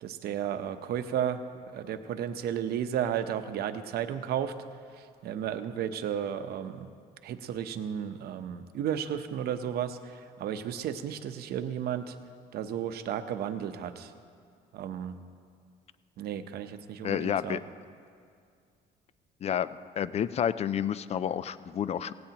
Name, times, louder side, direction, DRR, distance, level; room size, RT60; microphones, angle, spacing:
voice 1, 0.0-1.4 1.7-4.5 4.9-6.9 7.2-12.2 12.5-14.1 14.7-15.2 16.2-17.6, right 9 dB, 70° right, 9 dB, 0.8 m, -33 dB
voice 2, 17.0-17.6 19.4-19.7 20.0-22.1, left 9 dB, 40° left, 15 dB, 0.4 m, -30 dB
17.5 x 17.0 x 2.9 m, 2.2 s
cardioid pair, 110°, 17 cm